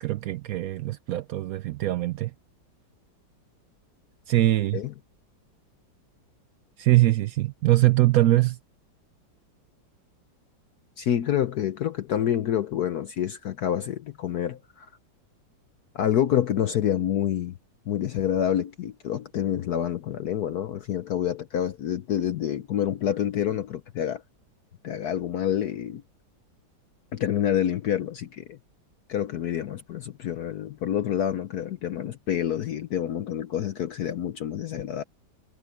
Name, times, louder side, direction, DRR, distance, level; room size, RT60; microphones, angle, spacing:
voice 1, 0.0-2.3 4.3-4.8 6.8-8.6, right 16 dB, 70° right, 0.8 m, -22 dB
voice 2, 11.0-14.9 15.9-17.6 17.9-24.2 24.8-26.0 27.1-28.6 29.1-35.0, left 10 dB, 65° left, 1.2 m, -27 dB
omnidirectional pair, 2.0 m